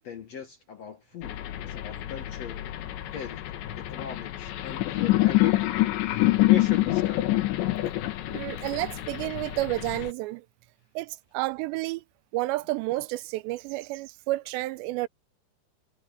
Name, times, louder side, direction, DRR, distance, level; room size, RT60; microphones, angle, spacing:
voice 1, 0.0-2.7 3.1-3.4 3.8-7.2, left 7 dB, 65° left, 1.6 m, -39 dB
sound 1, 1.2-10.1, left 17 dB, 85° left, 3.6 m, -26 dB
voice 2, 8.3-10.4 11.0-12.0 12.3-15.1, right 18 dB, 85° right, 2.9 m, -30 dB
omnidirectional pair, 5.0 m